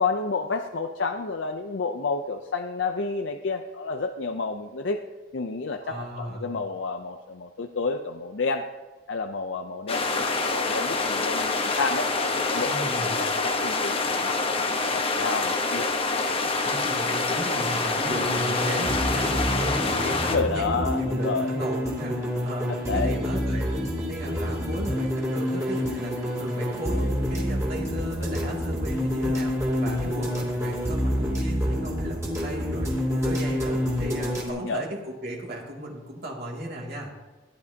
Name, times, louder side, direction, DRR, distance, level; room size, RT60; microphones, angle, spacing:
voice 1, 0.0-5.0 5.3-8.6 9.1-15.9 20.2-21.5 22.7-23.1 34.5-34.8, left 4 dB, 65° left, 5 dB, 0.6 m, -30 dB
voice 2, 5.8-6.5 12.6-13.2 16.6-23.7 24.1-37.1, right 1 dB, 50° right, -2 dB, 2.4 m, -36 dB
sound 1, 9.9-20.4, left 3 dB, 30° left, 0.9 m, -26 dB
sound 2, 18.0-34.5, equal, 15° right, 2.7 m, -27 dB
15.5 x 11.0 x 2.8 m, 1.2 s
head